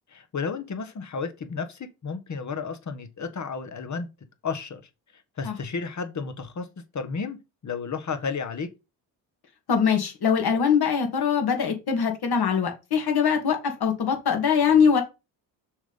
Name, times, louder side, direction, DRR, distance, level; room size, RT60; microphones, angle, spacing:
voice 1, 0.1-4.1 4.4-4.8 5.4-6.7 6.9-7.4 7.6-8.7, left 5 dB, 40° left, 1.5 m, -32 dB
voice 2, 9.7-15.0, left 6 dB, 55° left, 2.5 m, -22 dB
6.1 x 3.8 x 5.4 m
supercardioid pair, 60°, 45 cm